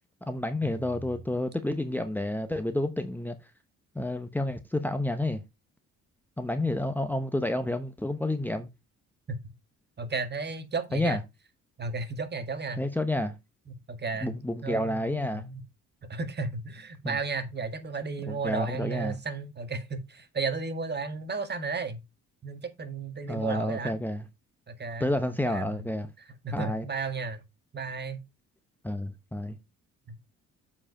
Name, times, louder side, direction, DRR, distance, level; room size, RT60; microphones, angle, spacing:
voice 1, 0.2-3.4 3.9-5.4 6.4-8.7 10.9-11.2 12.8-13.4 14.2-15.4 17.0-17.2 18.3-19.2 23.3-24.3 25.0-26.1 26.5-26.8 28.8-29.6, left 1 dB, 5° left, 0.9 m, -30 dB
voice 2, 10.0-11.2 11.8-12.8 13.7-14.3 14.6-15.6 16.1-22.0 22.4-24.0 24.7-25.1 25.4-25.9 26.2-27.4 27.7-28.2, right 4 dB, 35° right, 1.7 m, -34 dB
7.6 x 4.8 x 4.9 m
cardioid pair, 90°, 30 cm